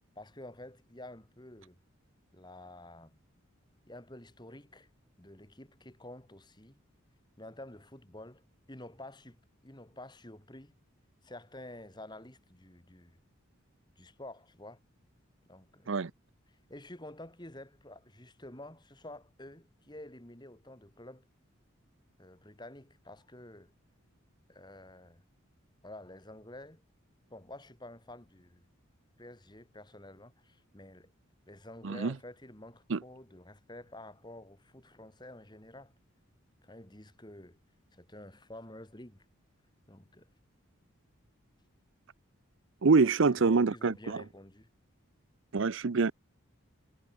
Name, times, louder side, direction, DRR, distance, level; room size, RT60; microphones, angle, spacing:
voice 1, 0.2-1.8 2.3-3.2 3.9-4.9 5.2-6.8 7.4-9.4 9.6-10.8 11.2-13.2 14.0-14.8 15.5-15.9 16.7-21.3 22.2-23.7 24.5-25.2 25.8-26.8 27.3-28.6 29.2-31.1 31.5-35.9 36.6-37.6 37.9-39.2 39.9-40.3 43.0-44.7, left 1 dB, 20° left, 2.6 m, -49 dB
voice 2, 31.8-32.1 32.9-33.0 42.8-44.2 45.5-46.1, right 4 dB, 65° right, 0.6 m, -25 dB
head